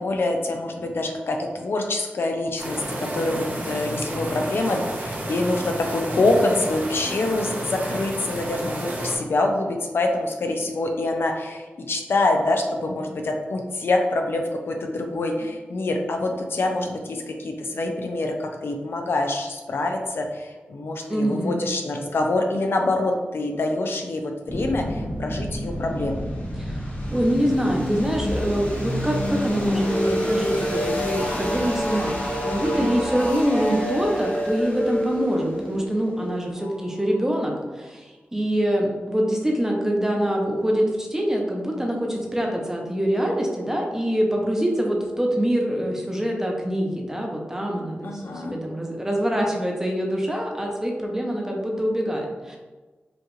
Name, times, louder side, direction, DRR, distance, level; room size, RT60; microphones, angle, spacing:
voice 1, 0.0-26.2 48.0-48.6, left 2 dB, 70° left, 3 dB, 0.5 m, -25 dB
sound 1, 2.6-9.2, right 1 dB, 45° right, 0.9 m, -31 dB
voice 2, 21.1-21.6 26.6-52.6, equal, 10° right, -1 dB, 0.8 m, -25 dB
sound 2, 24.5-37.3, equal, 45° left, 1.4 m, -28 dB
5.0 x 2.4 x 3.1 m, 1.3 s
wide cardioid pair, 70°, 4 cm